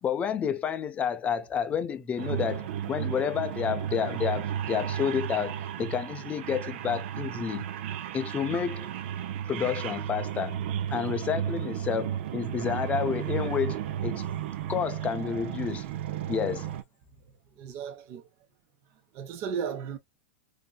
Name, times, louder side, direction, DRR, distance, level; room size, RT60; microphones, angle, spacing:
voice 1, 0.0-7.7 8.1-8.9 9.5-10.6 10.9-14.4 14.7-15.8 16.3-16.7, left 7 dB, 20° left, 0.5 m, -30 dB
sound 1, 2.2-16.8, right 10 dB, 65° right, 0.6 m, -33 dB
voice 2, 17.6-18.2 19.1-20.0, right 7 dB, 45° right, 0.9 m, -35 dB
3.7 x 2.7 x 2.3 m
supercardioid pair, 135°, 7 cm